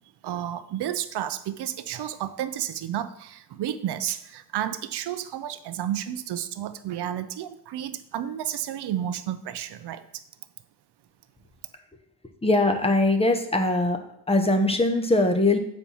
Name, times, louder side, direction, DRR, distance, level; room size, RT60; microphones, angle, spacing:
voice 1, 0.2-10.2, right 11 dB, 70° right, 12 dB, 0.6 m, -31 dB
voice 2, 12.4-14.0 14.3-15.6, left 2 dB, 15° left, 5 dB, 0.8 m, -21 dB
7.4 x 4.5 x 5.4 m, 0.75 s
cardioid pair, 125°, 42 cm